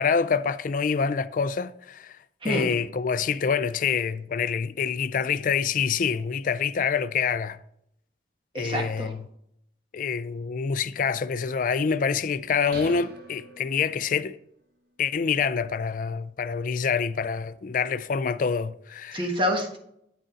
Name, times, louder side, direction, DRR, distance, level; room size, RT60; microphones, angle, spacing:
voice 1, 0.0-2.1 2.4-7.6 8.6-9.2 9.9-14.4 15.0-19.2, left 6 dB, 45° left, 0.4 m, -26 dB
voice 2, 8.5-9.1 19.1-19.8, equal, 30° right, 1.4 m, -27 dB
sound 1, 12.7-14.3, right 2 dB, 55° right, 1.0 m, -44 dB
9.0 x 6.4 x 3.9 m
head